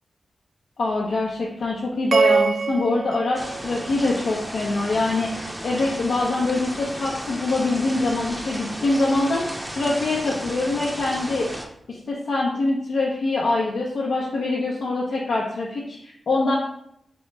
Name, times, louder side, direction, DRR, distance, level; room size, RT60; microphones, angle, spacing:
voice 1, 0.8-11.6 11.9-16.5, left 2 dB, 85° left, -5 dB, 0.7 m, -24 dB
sound 1, 2.1-4.5, right 5 dB, 65° right, 0.3 m, -24 dB
sound 2, 3.3-11.6, equal, 5° right, 0.5 m, -34 dB
4.5 x 3.0 x 3.3 m, 0.74 s
wide cardioid pair, 125°, 0 cm